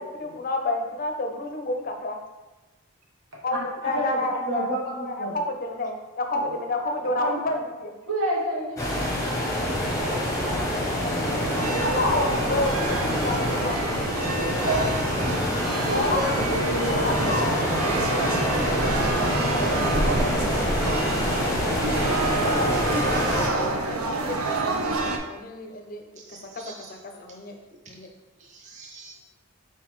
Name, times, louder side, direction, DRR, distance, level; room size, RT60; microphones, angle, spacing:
voice 1, 0.0-2.2 3.4-7.9 11.8-13.8 15.9-16.3 16.9-19.8 22.4-26.0 26.5-26.6 27.0-27.5 27.9-28.1, left 2 dB, 40° left, 4 dB, 0.5 m, -30 dB
voice 2, 3.8-5.3 7.2-7.6 8.1-11.3 14.2-14.9 15.8-16.5, right 1 dB, 60° right, -3 dB, 1.0 m, -30 dB
sound 1, 8.8-23.5, left 1 dB, 15° left, 0.8 m, -26 dB
sound 2, 11.2-25.2, right 3 dB, 85° right, 0.5 m, -28 dB
sound 3, 17.2-23.7, right 1 dB, 15° right, 1.3 m, -36 dB
voice 3, 19.8-20.6 26.2-26.9 28.4-29.1, right 2 dB, 35° right, 0 dB, 0.4 m, -40 dB
4.2 x 3.9 x 3.1 m, 1.1 s
head